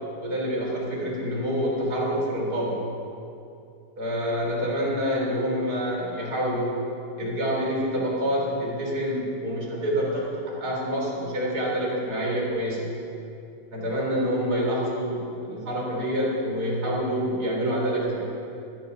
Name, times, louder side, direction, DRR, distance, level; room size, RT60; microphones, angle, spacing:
voice 1, 0.2-2.8 4.0-6.8 7.2-12.9 13.7-18.2, equal, 30° right, -3 dB, 3.5 m, -27 dB
14.0 x 12.0 x 6.7 m, 2.7 s
omnidirectional pair, 3.6 m